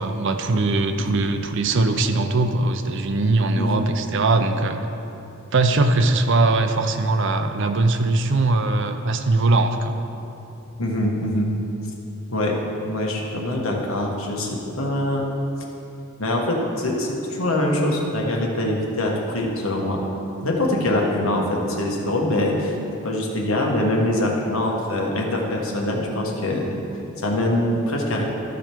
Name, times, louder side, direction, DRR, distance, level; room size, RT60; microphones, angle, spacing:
voice 1, 0.0-4.8 5.5-9.9, right 2 dB, 60° right, 7 dB, 0.6 m, -20 dB
voice 2, 3.6-3.9 10.8-11.5 12.3-12.5 12.9-14.5 14.7-15.3 16.2-20.0 20.4-22.8 23.0-26.8 27.2-28.2, left 1 dB, 80° left, -1 dB, 1.3 m, -23 dB
13.5 x 5.1 x 4.5 m, 2.9 s
head